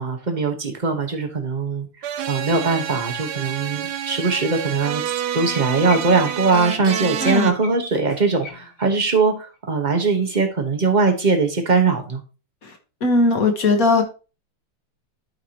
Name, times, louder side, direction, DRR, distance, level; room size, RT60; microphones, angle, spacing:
voice 1, 0.0-1.9 2.3-12.2, right 4 dB, 30° right, 4 dB, 0.8 m, -21 dB
sound 1, 2.0-7.5, right 9 dB, 65° right, 1.0 m, -28 dB
sound 2, 3.4-4.8 5.1-5.2 5.5-9.2 9.5-9.6, left 3 dB, 65° left, 2.0 m, -40 dB
voice 2, 7.2-7.5 12.6-12.7 13.0-14.0, left 3 dB, 45° left, 5 dB, 1.5 m, -18 dB
12.0 x 4.8 x 2.9 m, 0.32 s
omnidirectional pair, 2.3 m